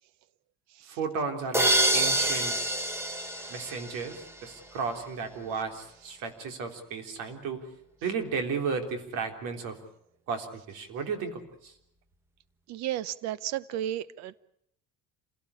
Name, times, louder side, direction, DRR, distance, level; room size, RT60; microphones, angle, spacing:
voice 1, 0.9-2.6 3.5-7.7 8.0-9.8 10.3-11.7, right 5 dB, 85° right, 5 dB, 3.8 m, -34 dB
sound 1, 1.5-4.4, right 1 dB, 10° right, 1.2 m, -26 dB
voice 2, 12.7-14.4, right 12 dB, 60° right, 18 dB, 0.9 m, -34 dB
27.0 x 17.0 x 8.4 m, 0.76 s
cardioid pair, 160°, 30 cm